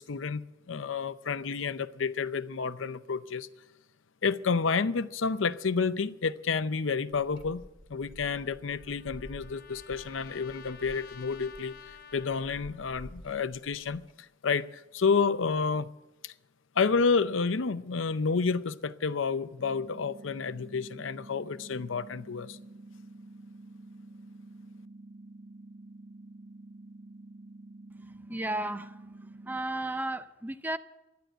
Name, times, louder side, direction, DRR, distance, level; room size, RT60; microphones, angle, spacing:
voice 1, 0.0-3.5 4.2-7.6 7.9-11.8 12.1-14.0 14.4-15.9 16.2-16.3 16.8-22.6, left 5 dB, 80° left, 0.6 m, -30 dB
sound 1, 7.2-14.1, equal, 25° left, 1.5 m, -51 dB
Trumpet, 8.2-13.0, left 7 dB, 50° left, 0.8 m, -51 dB
sound 2, 19.6-29.6, right 2 dB, 60° right, 0.7 m, -49 dB
voice 2, 28.0-29.0 29.5-30.8, right 1 dB, 10° right, 0.5 m, -34 dB
13.0 x 10.5 x 7.8 m
head